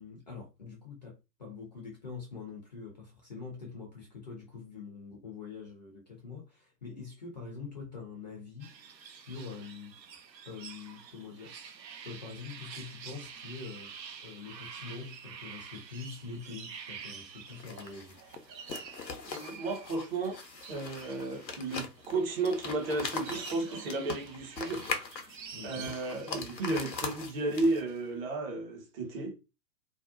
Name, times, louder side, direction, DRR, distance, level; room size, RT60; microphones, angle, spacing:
voice 1, 0.0-9.9 10.5-11.8 12.0-18.2 19.4-19.5 25.5-26.0, left 5 dB, 30° left, 0.4 m, -45 dB
sound 1, 8.6-27.0, right 6 dB, 85° right, 0.6 m, -48 dB
sound 2, 17.5-28.0, left 4 dB, 90° left, 0.7 m, -41 dB
voice 2, 19.3-20.4 20.7-24.9 25.6-29.4, right 2 dB, 35° right, 0.7 m, -33 dB
2.5 x 2.0 x 2.4 m
figure-of-eight pair, 110°, 50 cm